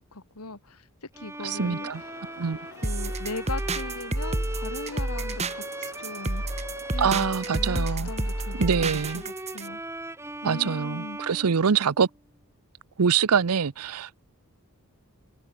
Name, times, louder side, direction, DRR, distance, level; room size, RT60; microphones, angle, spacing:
voice 1, 0.1-1.9 2.8-6.4 6.9-9.8 10.4-11.2, left 2 dB, 85° left, 2.8 m, -39 dB
Bowed string instrument, 1.1-12.1, right 2 dB, 10° right, 2.5 m, -39 dB
voice 2, 1.4-2.0 2.4-2.6 7.0-8.1 8.6-9.2 10.4-12.1 13.0-14.2, right 6 dB, 85° right, 0.6 m, -24 dB
sound 1, 1.9-8.7, left 3 dB, 65° left, 4.1 m, -47 dB
sound 2, 2.8-9.7, right 2 dB, 30° right, 1.9 m, -30 dB
head